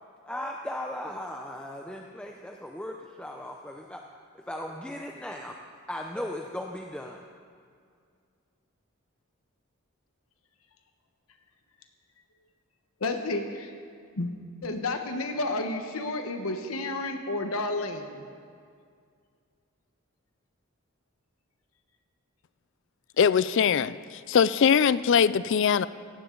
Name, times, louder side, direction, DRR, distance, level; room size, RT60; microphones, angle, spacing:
voice 1, 0.2-4.0 4.3-5.6 5.9-7.3, left 1 dB, 5° left, 1 dB, 0.5 m, -37 dB
voice 2, 13.0-13.7 14.2-14.3 14.6-18.2, left 2 dB, 80° left, 5 dB, 1.1 m, -31 dB
voice 3, 23.2-25.9, left 7 dB, 60° left, 17 dB, 0.4 m, -22 dB
17.0 x 15.0 x 3.8 m, 2.2 s
head